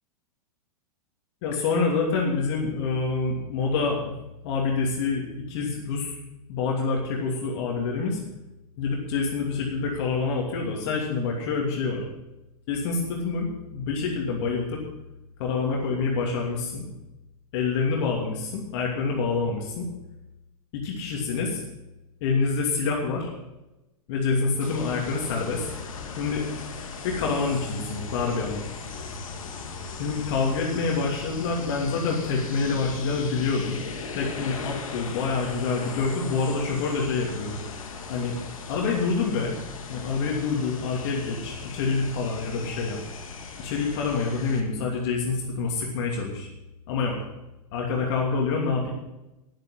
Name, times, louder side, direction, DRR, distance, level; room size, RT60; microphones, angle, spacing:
voice 1, 1.4-4.1 4.4-6.2 6.5-8.2 8.8-12.0 12.7-14.8 15.4-16.8 17.5-19.9 20.7-21.6 22.2-23.3 24.1-25.7 26.2-26.4 27.0-28.6 30.0-33.8 34.1-37.6 38.1-38.3 38.7-39.6 39.9-43.0 43.6-46.5 46.9-47.2 47.7-48.9, left 4 dB, 45° left, -1 dB, 2.8 m, -27 dB
sound 1, 24.6-44.6, left 4 dB, 65° left, 2.1 m, -38 dB
12.0 x 11.0 x 5.7 m, 0.97 s
figure-of-eight pair, 100°, 19 cm